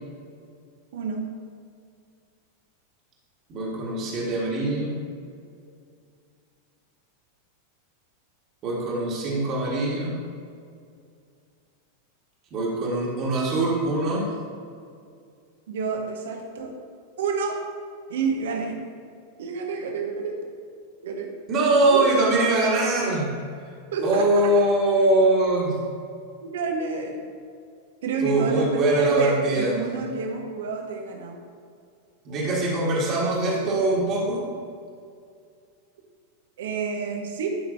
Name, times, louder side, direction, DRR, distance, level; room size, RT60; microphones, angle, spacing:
voice 1, 0.9-1.2 15.7-16.7 17.2-17.6 18.1-18.8 19.4-20.3 21.0-21.3 21.9-22.0 23.9-24.3 26.4-27.2 28.0-31.4 36.6-37.5, right 4 dB, 60° right, 2 dB, 1.2 m, -29 dB
voice 2, 3.5-4.9 8.6-10.1 12.5-14.3 21.5-23.4 24.0-25.8 28.2-29.8 32.3-34.4, right 2 dB, 35° right, -5 dB, 1.9 m, -22 dB
12.0 x 5.7 x 2.8 m, 2.3 s
figure-of-eight pair, 90°, 0 cm